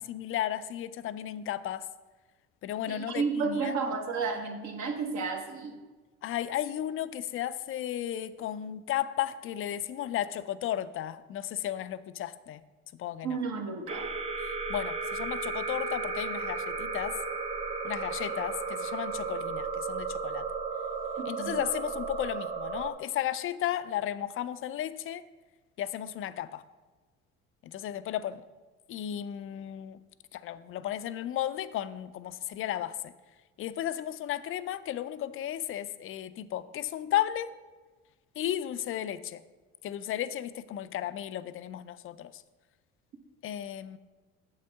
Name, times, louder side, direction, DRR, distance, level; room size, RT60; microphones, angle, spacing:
voice 1, 0.0-1.9 2.6-3.8 6.2-12.6 12.9-13.4 14.4-17.2 17.8-20.4 21.3-25.2 25.8-26.6 27.6-28.4 28.9-30.0 30.3-33.1 33.6-37.5 38.4-39.4 39.8-42.4 43.4-44.0, left 11 dB, 40° left, 14 dB, 0.4 m, -34 dB
voice 2, 2.9-5.8 13.2-14.1 21.2-21.6, right 5 dB, 55° right, 3 dB, 1.4 m, -32 dB
sound 1, 13.9-22.9, right 4 dB, 20° right, 0.7 m, -34 dB
8.5 x 7.1 x 3.5 m, 1.3 s
supercardioid pair, 85°, 32 cm